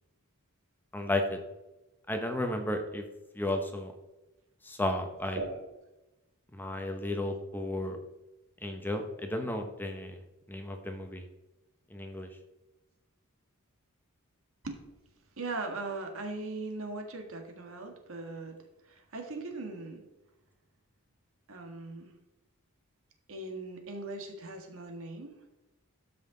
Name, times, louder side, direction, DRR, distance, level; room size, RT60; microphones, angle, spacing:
voice 1, 0.9-1.4 2.1-3.0 3.3-3.9 4.6-5.4 6.5-8.0 8.6-10.2 10.5-11.2 11.9-12.3, left 1 dB, 10° left, 5 dB, 0.9 m, -33 dB
voice 2, 15.4-18.6 18.8-20.0 21.5-22.1 23.3-25.4, right 2 dB, 65° right, 4 dB, 1.7 m, -39 dB
13.0 x 5.6 x 3.9 m, 1.0 s
head